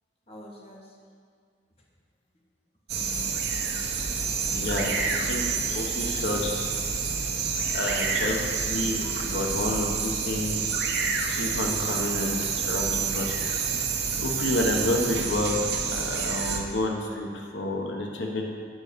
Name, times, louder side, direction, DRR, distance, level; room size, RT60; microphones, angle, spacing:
voice 1, 0.3-1.0 3.9-4.2 8.2-8.4 8.7-9.5 15.7-15.8, equal, 35° left, -2 dB, 1.2 m, -45 dB
sound 1, 2.9-16.6, right 5 dB, 60° right, 1.0 m, -28 dB
voice 2, 4.5-6.7 7.7-8.4 8.7-9.0 9.3-10.9 11.3-13.4 14.2-15.6 15.9-18.5, left 1 dB, 85° left, 1 dB, 1.1 m, -29 dB
9.2 x 5.4 x 6.7 m, 2.1 s
head